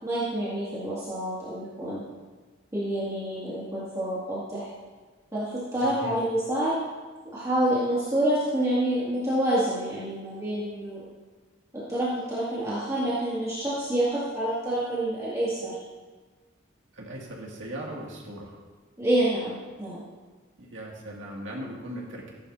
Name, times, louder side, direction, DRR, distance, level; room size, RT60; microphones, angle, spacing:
voice 1, 0.0-2.0 2.7-4.7 5.3-6.7 7.3-11.0 11.7-15.8 19.0-20.0, right 1 dB, 15° right, -10 dB, 2.1 m, -27 dB
voice 2, 5.8-6.2 16.9-18.6 20.6-22.3, right 1 dB, 75° right, -2 dB, 2.2 m, -38 dB
15.0 x 10.5 x 2.7 m, 1.4 s
head